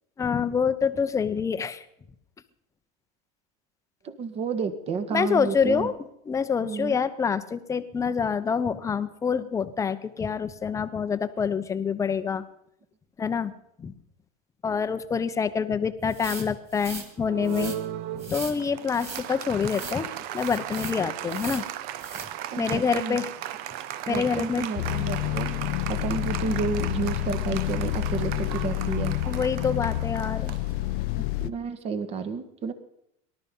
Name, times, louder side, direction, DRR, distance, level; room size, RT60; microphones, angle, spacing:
voice 1, 0.2-1.8 5.1-5.9 6.3-12.4 13.2-13.5 13.8-13.9 14.6-17.8 18.1-21.6 22.6-23.3 24.1-24.7 29.3-30.6, left 6 dB, 15° left, 12 dB, 0.9 m, -26 dB
voice 2, 4.0-5.9 6.6-7.0 22.5-23.2 24.1-25.5 25.9-29.1 31.4-32.7, right 5 dB, 30° right, 10 dB, 1.7 m, -31 dB
sound 1, 16.1-17.1 17.4-17.8 18.2-18.6 18.9-19.3 19.6-20.0 20.4-21.0 21.3-21.7 22.0-22.3, right 3 dB, 15° right, 2.8 m, -39 dB
Applause, 17.2-31.3, right 12 dB, 50° right, 1.0 m, -37 dB
sound 2, 24.8-31.5, left 15 dB, 50° left, 0.6 m, -28 dB
19.0 x 12.0 x 5.4 m, 0.76 s
supercardioid pair, 140°, 19 cm